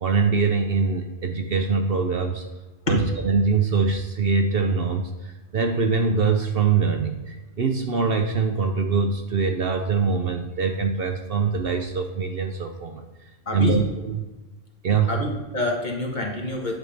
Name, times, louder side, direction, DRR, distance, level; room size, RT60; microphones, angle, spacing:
voice 1, 0.0-2.4 2.9-13.0 13.5-14.3 14.8-15.2, right 5 dB, 55° right, 5 dB, 0.8 m, -23 dB
voice 2, 13.5-13.8 15.1-16.8, left 2 dB, 40° left, 0 dB, 1.5 m, -27 dB
9.5 x 3.6 x 7.0 m, 1.2 s
omnidirectional pair, 1.3 m